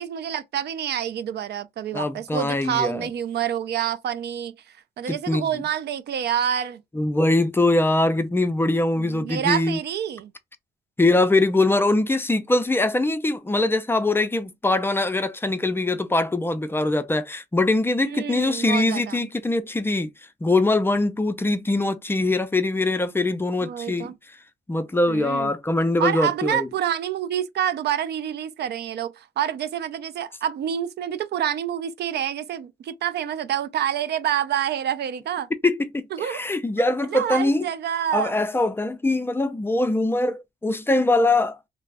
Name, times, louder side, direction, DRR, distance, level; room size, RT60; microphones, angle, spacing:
voice 1, 0.0-6.8 9.0-10.3 18.1-19.3 23.6-24.2 25.1-25.5 26.0-35.5 36.1-36.4 37.1-38.3, right 10 dB, 55° right, 0.4 m, -27 dB
voice 2, 1.9-3.1 5.1-5.5 6.9-9.8 11.0-20.1 20.4-24.1 24.7-26.7 35.6-37.7 38.1-41.6, left 2 dB, 10° left, 0.4 m, -22 dB
2.3 x 2.0 x 3.4 m
cardioid pair, 90°, 20 cm